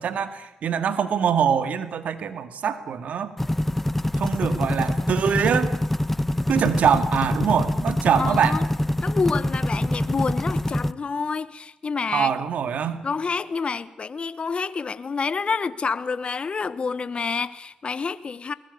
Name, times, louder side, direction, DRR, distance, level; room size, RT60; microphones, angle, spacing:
voice 1, 0.0-3.3 4.2-5.8 6.5-8.6 12.1-13.0, right 7 dB, 75° right, 2.2 m, -23 dB
sound 1, 3.4-10.9, left 1 dB, 10° left, 1.0 m, -25 dB
voice 2, 8.2-8.6 9.0-12.3 13.0-18.5, left 5 dB, 50° left, 1.1 m, -28 dB
22.0 x 19.5 x 8.4 m
supercardioid pair, 55°, 2 cm